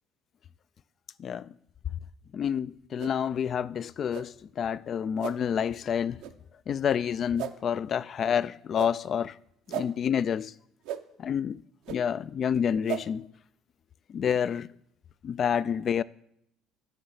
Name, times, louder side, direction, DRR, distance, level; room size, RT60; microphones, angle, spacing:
voice 1, 2.3-6.2 6.7-9.3 9.7-10.5 11.2-11.6 11.9-13.3 14.1-14.7 15.2-16.0, left 8 dB, 50° left, 0.3 m, -28 dB
sound 1, 3.0-3.1 4.1-4.2 5.2-5.3 6.2-6.3 7.4-7.5 8.7-8.9 9.7-9.9 10.8-11.0 11.8-12.0 12.9-13.0, right 12 dB, 70° right, 0.6 m, -34 dB
8.0 x 5.5 x 7.7 m
hypercardioid pair, 65°, 0 cm